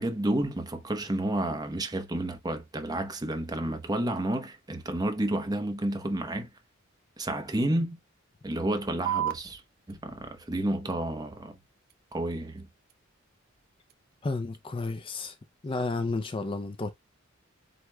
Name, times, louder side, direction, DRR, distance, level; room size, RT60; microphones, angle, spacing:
voice 1, 0.0-6.5 7.2-8.0 8.4-9.6 9.9-11.6 12.1-12.7, right 1 dB, 20° right, 0.9 m, -30 dB
sound 1, 9.1-16.1, right 11 dB, 50° right, 0.4 m, -40 dB
voice 2, 14.2-15.3 15.6-16.9, left 3 dB, 25° left, 0.4 m, -31 dB
7.8 x 3.1 x 2.2 m
head